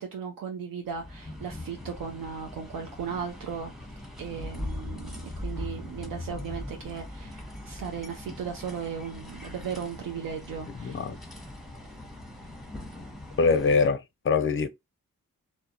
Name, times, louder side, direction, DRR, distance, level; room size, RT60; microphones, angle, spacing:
voice 1, 0.0-3.7 4.2-11.1, right 7 dB, 70° right, 0.5 m, -36 dB
sound 1, 0.8-13.9, left 1 dB, ahead, 0.9 m, -41 dB
voice 2, 10.7-11.2 13.4-14.7, left 4 dB, 35° left, 0.5 m, -24 dB
2.3 x 2.0 x 2.7 m
cardioid pair, 45°, 34 cm